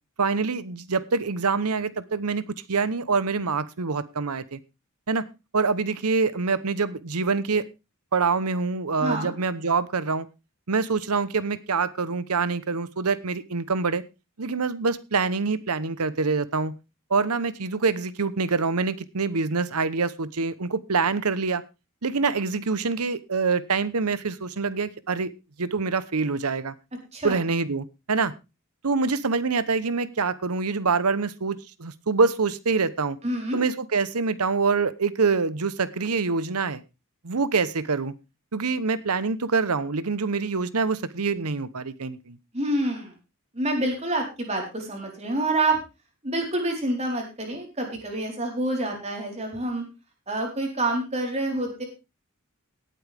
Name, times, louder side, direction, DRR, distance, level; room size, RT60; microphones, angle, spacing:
voice 1, 0.2-4.6 5.1-5.2 5.5-7.7 8.1-10.3 10.7-14.0 14.4-16.8 17.1-21.6 22.0-25.3 25.6-26.7 27.2-28.3 28.8-33.2 33.5-36.8 37.2-38.1 38.5-42.4, right 4 dB, 85° right, 16 dB, 1.0 m, -25 dB
voice 2, 9.0-9.3 27.1-27.4 33.2-33.6 42.5-43.1 43.5-45.8 46.2-49.8 50.3-51.8, right 2 dB, 30° right, 1 dB, 4.2 m, -27 dB
18.0 x 8.8 x 3.5 m, 0.27 s
head